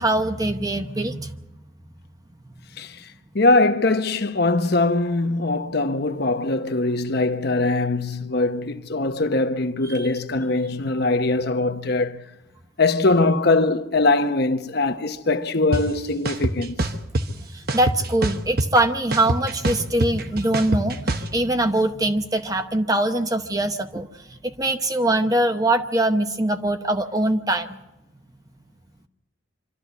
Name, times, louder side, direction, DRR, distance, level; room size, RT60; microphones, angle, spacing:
voice 1, 0.0-1.4 17.5-24.1 24.4-27.8, right 1 dB, 20° right, 0.8 m, -22 dB
voice 2, 3.3-12.2 12.8-16.9, left 2 dB, 50° left, 1.0 m, -22 dB
sound 1, 15.7-15.8 16.3-17.2 17.7-18.8 19.1-21.3, right 1 dB, 45° right, 1.0 m, -24 dB
25.0 x 13.0 x 8.2 m
head